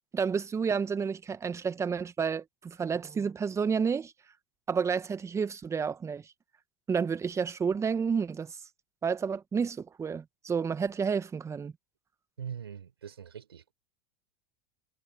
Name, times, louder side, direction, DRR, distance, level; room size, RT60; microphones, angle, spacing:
voice 1, 0.1-4.1 4.7-6.2 6.9-8.6 9.0-11.7, right 6 dB, 20° right, 1.7 m, -30 dB
voice 2, 12.4-13.7, right 8 dB, 85° right, 5.7 m, -42 dB
hypercardioid pair, 85°, 13 cm